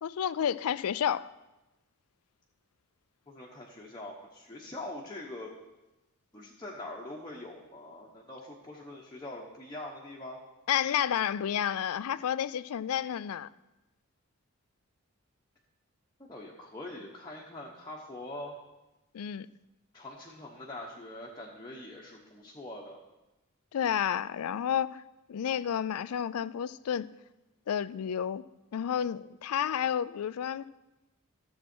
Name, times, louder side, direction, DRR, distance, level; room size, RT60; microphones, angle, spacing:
voice 1, 0.0-1.3 10.7-13.5 19.1-19.5 23.7-25.0 25.3-27.1 27.7-28.4 28.7-30.7, left 9 dB, 85° left, 18 dB, 0.4 m, -30 dB
voice 2, 3.3-5.5 6.3-10.4 16.2-18.6 19.9-23.0, left 1 dB, 20° left, -3 dB, 1.0 m, -43 dB
13.5 x 7.5 x 4.4 m, 1.0 s
head